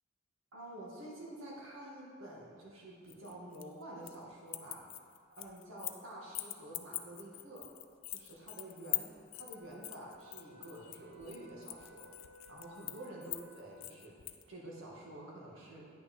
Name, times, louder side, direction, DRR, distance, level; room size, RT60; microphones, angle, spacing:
voice 1, 0.5-4.8 5.4-7.7 8.1-12.1 12.5-14.1 14.5-15.9, right 1 dB, 90° right, -4 dB, 1.8 m, -49 dB
sound 1, 3.1-4.2 4.5-6.0 6.3-14.4, left 17 dB, 75° left, 0.4 m, -43 dB
Wind instrument woodwind instrument, 9.5-14.1, equal, 70° right, 0.9 m, -59 dB
9.5 x 6.1 x 4.4 m, 2.1 s
head